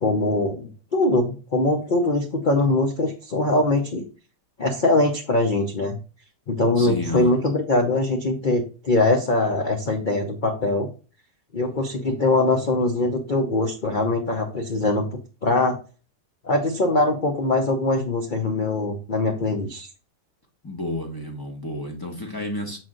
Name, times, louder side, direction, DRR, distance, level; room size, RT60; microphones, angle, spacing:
voice 1, 0.0-4.0 4.6-6.0 6.5-10.9 11.5-15.1 15.4-15.8 16.4-19.9, left 2 dB, 45° left, 3 dB, 0.7 m, -22 dB
voice 2, 6.8-7.4 20.6-22.8, left 1 dB, 15° left, 1 dB, 1.1 m, -31 dB
6.2 x 4.2 x 3.8 m, 0.34 s
omnidirectional pair, 1.8 m